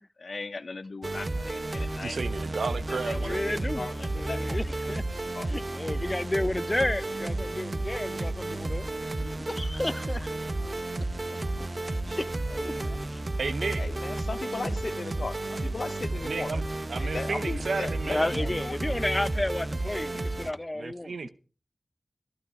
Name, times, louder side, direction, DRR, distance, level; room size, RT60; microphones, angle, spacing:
voice 1, 0.2-2.2 2.9-5.0 5.3-5.5 12.5-13.0 13.8-16.6 16.9-18.9, left 3 dB, 70° left, 1.1 m, -38 dB
sound 1, 1.0-20.5, right 2 dB, 45° right, 1.0 m, -32 dB
voice 2, 2.0-3.4 13.4-13.8 16.2-16.6 16.9-18.3 20.7-21.3, right 4 dB, 85° right, 0.8 m, -33 dB
voice 3, 3.2-3.9 4.1-5.0 5.5-8.9 9.2-10.3 10.6-10.7 11.7-12.3 13.1-13.2 18.1-21.3, left 1 dB, 25° left, 0.7 m, -32 dB
14.5 x 12.0 x 4.8 m
cardioid pair, 50°, 0 cm